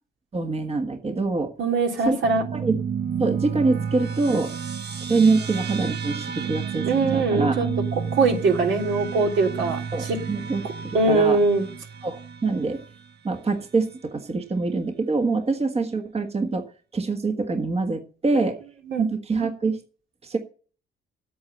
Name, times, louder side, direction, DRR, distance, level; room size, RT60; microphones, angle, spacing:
voice 1, 0.3-1.5 2.0-2.2 2.5-2.8 3.2-4.5 5.1-7.6 9.9-11.4 12.0-12.8 13.2-18.6 19.0-19.8 20.2-20.4, right 3 dB, 30° right, 5 dB, 1.5 m, -25 dB
voice 2, 1.6-2.4 6.8-7.7 8.1-10.2 10.9-11.7 18.9-19.1, right 3 dB, 70° right, 2 dB, 3.1 m, -22 dB
sound 1, 2.2-13.0, right 7 dB, 55° right, 1.2 m, -31 dB
8.6 x 8.2 x 8.6 m, 0.41 s
cardioid pair, 90°, 20 cm